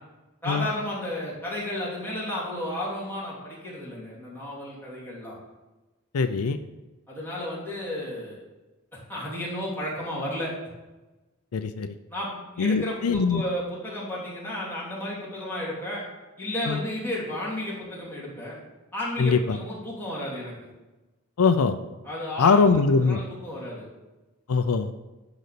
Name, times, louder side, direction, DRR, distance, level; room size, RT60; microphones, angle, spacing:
voice 1, 0.4-5.3 7.1-8.4 9.1-10.5 12.1-16.0 16.4-18.6 18.9-20.5 22.0-23.9, left 1 dB, 10° left, -7 dB, 3.0 m, -33 dB
voice 2, 6.1-6.6 11.5-11.9 12.6-13.4 16.7-16.8 19.2-19.6 21.4-21.8 22.4-23.2 24.5-24.9, left 4 dB, 80° left, 10 dB, 0.5 m, -22 dB
10.5 x 4.0 x 6.7 m, 1.1 s
head